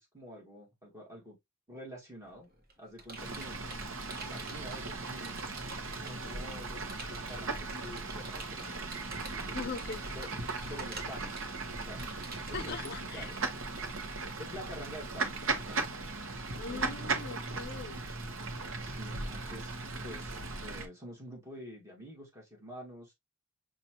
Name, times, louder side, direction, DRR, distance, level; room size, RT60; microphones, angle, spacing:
voice 1, 0.0-1.4 1.7-2.5 2.8-3.6 4.2-5.5 6.0-8.9 9.2-9.7 10.1-10.3 10.7-11.3 11.8-12.0 12.4-13.4 14.4-15.8 16.7-17.2 18.8-19.8 20.0-23.1, equal, 15° right, 1.7 m, -48 dB
Computer keyboard, 2.2-6.3 6.9-12.7, right 3 dB, 45° right, 1.2 m, -48 dB
Fowl / Bird, 3.2-20.9, right 3 dB, 65° right, 0.9 m, -38 dB
voice 2, 6.1-6.5 9.5-10.0 12.5-13.3 14.2-14.3 16.6-18.1, left 4 dB, 50° left, 0.5 m, -41 dB
5.6 x 2.5 x 2.8 m
head